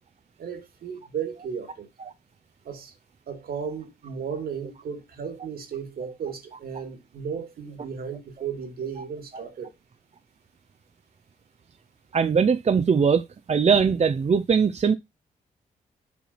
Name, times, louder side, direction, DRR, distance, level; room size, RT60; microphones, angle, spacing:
voice 1, 0.4-1.9 2.6-2.9 3.3-9.7, right 7 dB, 75° right, 2.4 m, -35 dB
voice 2, 12.1-14.9, right 6 dB, 45° right, 0.8 m, -21 dB
7.1 x 4.6 x 4.2 m
cardioid pair, 60°, 16 cm